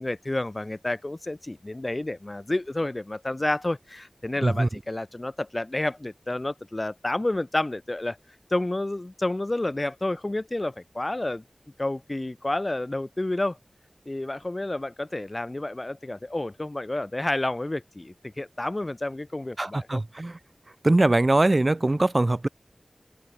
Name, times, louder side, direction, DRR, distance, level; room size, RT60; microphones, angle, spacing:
voice 1, 0.0-8.2 8.5-11.4 11.8-13.6 14.1-20.0, left 2 dB, 35° left, 5.4 m, -30 dB
voice 2, 19.6-20.4 20.8-22.5, right 2 dB, 40° right, 6.4 m, -22 dB
open air
wide cardioid pair, 60°, 0 cm